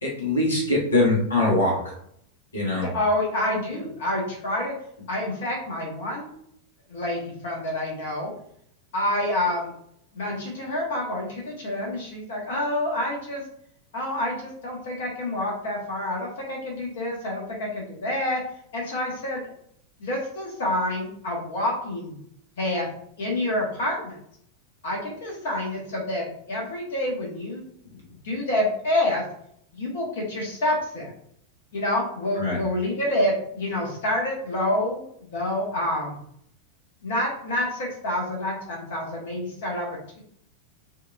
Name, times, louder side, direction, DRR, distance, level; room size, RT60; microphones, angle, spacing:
voice 1, 0.0-1.9 2.5-2.9 32.4-32.6, left 2 dB, 75° left, -3 dB, 1.1 m, -22 dB
voice 2, 2.8-4.7 5.1-6.3 6.9-8.3 8.9-9.7 10.1-13.4 13.9-18.4 18.7-19.4 20.0-22.2 22.6-22.9 23.2-24.2 24.8-27.6 27.9-29.2 29.7-31.1 31.7-36.2 37.0-40.2, left 1 dB, 55° left, -1 dB, 1.1 m, -28 dB
5.8 x 2.5 x 2.4 m, 0.70 s
figure-of-eight pair, 90°, 0 cm